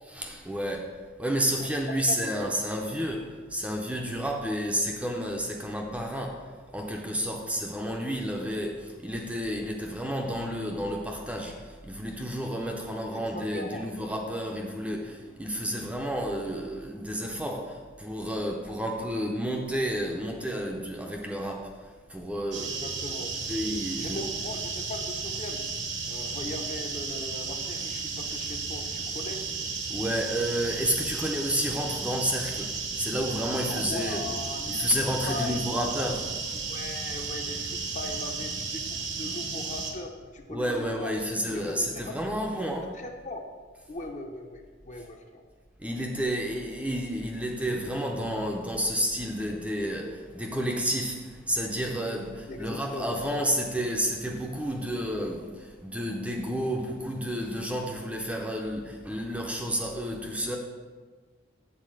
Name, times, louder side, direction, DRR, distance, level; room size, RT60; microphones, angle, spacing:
voice 1, 0.1-22.8 23.5-24.3 29.9-34.2 34.7-36.5 40.5-43.0 45.8-60.6, equal, 5° right, 0.6 m, -31 dB
voice 2, 13.1-13.9 22.6-23.4 24.0-25.6 26.1-29.4 33.7-34.8 35.3-35.6 36.7-41.1 41.5-42.1 42.9-43.4 43.9-45.4 52.5-53.3, left 2 dB, 35° left, 0.7 m, -39 dB
sound 1, 22.5-39.9, right 4 dB, 60° right, 1.1 m, -34 dB
7.6 x 4.1 x 6.4 m
head